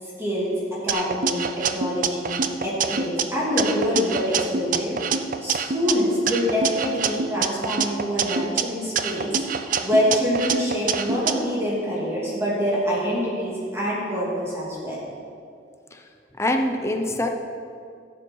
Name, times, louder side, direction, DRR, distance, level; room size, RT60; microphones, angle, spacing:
voice 1, 0.2-5.0 5.4-9.4 9.8-15.0, equal, 15° right, -7 dB, 3.0 m, -25 dB
sound 1, 0.9-3.2 3.6-5.9 6.3-8.6 9.0-11.3, right 6 dB, 50° right, 0.5 m, -26 dB
voice 2, 16.4-17.3, left 1 dB, 15° left, 4 dB, 0.8 m, -24 dB
17.5 x 8.1 x 4.8 m, 2.4 s
head